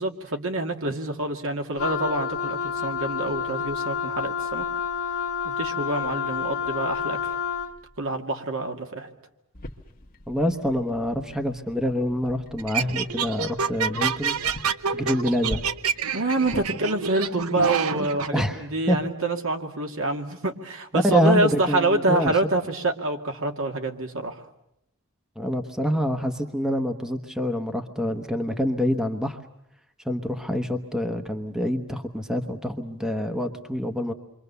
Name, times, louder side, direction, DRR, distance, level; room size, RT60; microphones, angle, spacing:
voice 1, 0.0-4.7 5.4-7.4 8.0-9.1 16.1-24.5, right 2 dB, 65° right, 3 dB, 2.3 m, -26 dB
Wind instrument woodwind instrument, 1.8-7.8, left 6 dB, 75° left, 1.6 m, -29 dB
sound 1, 9.5-16.7, left 1 dB, 40° left, 1.4 m, -42 dB
voice 2, 10.3-14.4 14.9-15.6 18.3-19.0 20.9-22.3 25.4-29.4 30.0-34.1, equal, 5° right, 6 dB, 1.1 m, -26 dB
sound 2, 12.6-18.3, right 6 dB, 80° right, 0.9 m, -28 dB
28.5 x 24.5 x 6.9 m, 0.80 s
head